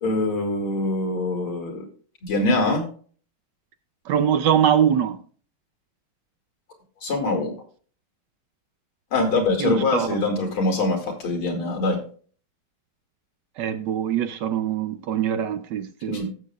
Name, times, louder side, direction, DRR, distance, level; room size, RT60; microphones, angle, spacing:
voice 1, 0.0-1.8 2.2-2.9 7.0-7.5 9.1-12.0 16.1-16.3, left 2 dB, 85° left, 3.2 m, -23 dB
voice 2, 4.1-5.2 9.6-10.2 13.6-16.3, right 9 dB, 70° right, 1.1 m, -23 dB
17.0 x 7.2 x 2.4 m
omnidirectional pair, 2.3 m